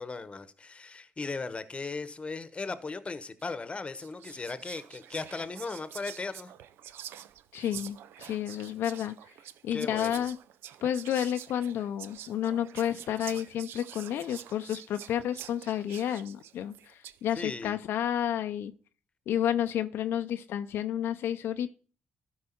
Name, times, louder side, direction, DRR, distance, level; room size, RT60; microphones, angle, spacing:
voice 1, 0.0-6.5 9.7-10.2 17.3-17.8, left 4 dB, 30° left, 1.0 m, -37 dB
Whispering, 3.4-3.6 4.0-17.3, right 11 dB, 85° right, 0.4 m, -47 dB
voice 2, 7.5-9.2 9.6-10.4 10.8-18.7 19.3-21.7, left 10 dB, 80° left, 0.5 m, -31 dB
12.5 x 4.7 x 4.4 m
cardioid pair, 75°, 4 cm